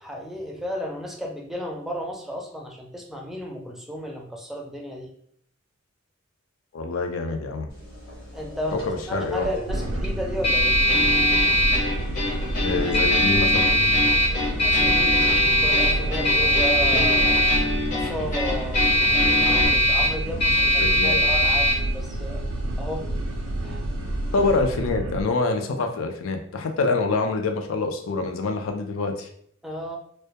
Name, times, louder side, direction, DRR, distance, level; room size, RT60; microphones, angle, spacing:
voice 1, 0.0-5.1 8.3-8.8 9.1-10.8 13.9-17.4 17.9-22.4 22.8-23.1 23.6-23.8 29.6-30.0, equal, ahead, 0 dB, 0.4 m, -33 dB
voice 2, 6.7-7.7 8.7-9.5 12.6-13.8 20.8-21.2 24.3-29.3, left 3 dB, 90° left, 4 dB, 0.4 m, -26 dB
sound 1, 7.7-24.5, equal, 55° left, 1.0 m, -23 dB
sound 2, 9.7-25.2, right 1 dB, 80° right, 0.3 m, -29 dB
sound 3, 10.9-19.7, left 2 dB, 40° left, 0.7 m, -29 dB
2.1 x 2.1 x 2.7 m, 0.64 s
head